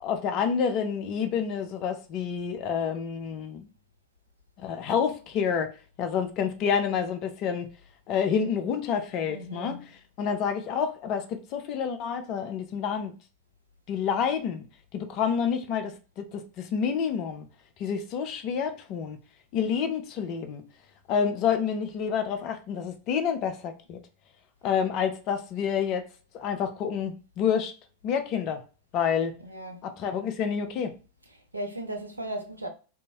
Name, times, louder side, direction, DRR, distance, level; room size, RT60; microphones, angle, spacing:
voice 1, 0.0-3.7 4.6-7.7 8.1-9.9 10.2-13.1 13.9-14.6 14.9-17.5 17.8-19.2 19.5-20.7 21.1-24.0 24.6-26.1 26.3-27.7 28.0-28.6 28.9-29.4 29.8-31.0, left 7 dB, 40° left, 0.5 m, -28 dB
voice 2, 9.3-9.9 29.4-29.8 31.3-32.7, right 1 dB, 85° right, 0.5 m, -37 dB
2.6 x 2.2 x 2.9 m
figure-of-eight pair, 90°, 0 cm